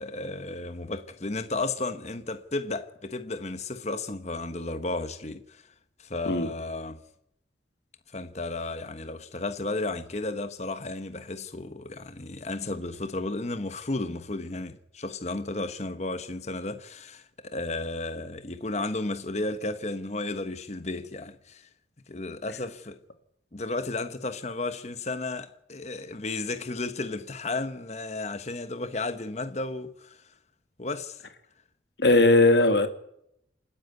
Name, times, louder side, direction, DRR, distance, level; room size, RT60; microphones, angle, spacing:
voice 1, 0.0-5.6 6.0-7.0 8.1-21.7 22.1-23.0 23.5-30.2 30.8-31.3, left 2 dB, 40° left, 1.1 m, -33 dB
voice 2, 32.0-32.9, left 2 dB, 65° left, 2.3 m, -19 dB
28.0 x 10.5 x 9.3 m
head